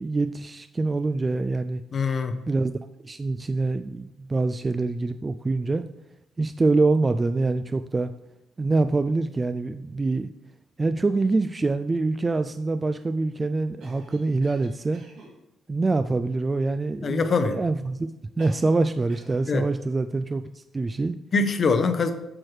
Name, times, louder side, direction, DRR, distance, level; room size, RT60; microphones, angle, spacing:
voice 1, 0.0-1.8 2.5-2.7 3.0-5.8 6.4-8.1 8.6-10.3 10.8-15.0 15.7-18.1 18.4-21.1, right 3 dB, 25° right, 10 dB, 0.3 m, -25 dB
voice 2, 1.9-2.3 17.0-17.6 19.5-19.7 21.3-22.1, left 4 dB, 50° left, 8 dB, 0.8 m, -23 dB
Cough, 13.8-15.4 18.4-18.8 19.1-19.5, right 2 dB, 75° right, 2.1 m, -47 dB
8.7 x 6.3 x 3.2 m, 0.90 s
cardioid pair, 90°, 0 cm